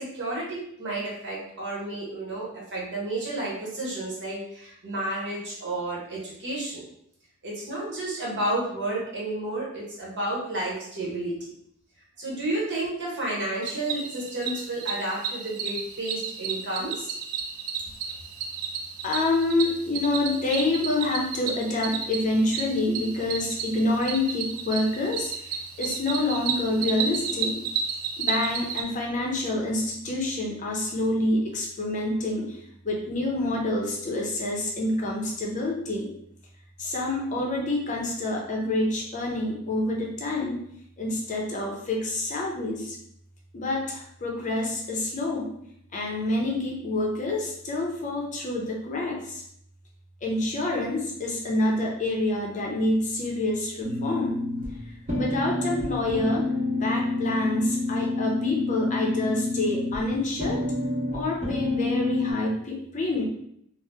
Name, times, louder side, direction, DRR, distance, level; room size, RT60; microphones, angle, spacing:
voice 1, 0.0-6.8 7.4-11.4 12.2-17.1, right 1 dB, 55° right, -5 dB, 1.1 m, -31 dB
Cricket, 13.6-28.8, right 6 dB, 80° right, 0.4 m, -32 dB
voice 2, 19.0-27.6 28.2-32.5 32.8-36.1 36.8-40.6 41.0-43.0 43.5-45.5 45.9-49.4 50.2-54.4 55.1-56.5 56.7-60.6 61.1-63.2, left 2 dB, 35° left, -1 dB, 0.6 m, -27 dB
sound 1, 53.8-62.3, left 2 dB, 35° right, 1.0 m, -28 dB
2.8 x 2.0 x 3.4 m, 0.71 s
head